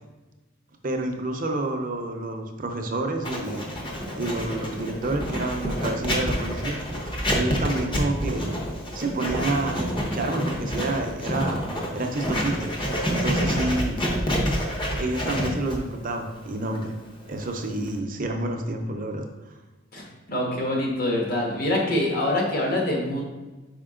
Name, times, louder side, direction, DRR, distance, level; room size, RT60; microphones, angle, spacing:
voice 1, 0.8-3.7 4.2-6.8 7.3-8.5 8.9-11.6 11.9-12.7 13.1-14.0 15.0-16.9 17.3-19.6, right 2 dB, 45° right, 3 dB, 0.7 m, -29 dB
Writing, 3.2-18.0, equal, 25° left, 0.9 m, -28 dB
voice 2, 20.3-23.2, left 1 dB, 50° left, -2 dB, 1.5 m, -25 dB
5.1 x 5.0 x 3.8 m, 1.2 s
head